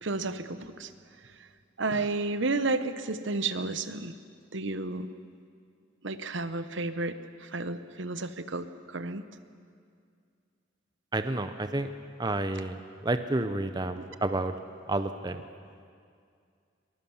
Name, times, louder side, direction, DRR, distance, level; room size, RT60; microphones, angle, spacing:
voice 1, 0.0-0.9 1.4-1.5 1.8-4.1 4.5-5.1 6.0-9.2, right 3 dB, 65° right, 11 dB, 1.0 m, -32 dB
voice 2, 11.1-11.9 12.2-14.5 14.9-15.4, right 2 dB, 20° right, 9 dB, 0.7 m, -30 dB
23.0 x 21.0 x 7.2 m, 2.3 s
head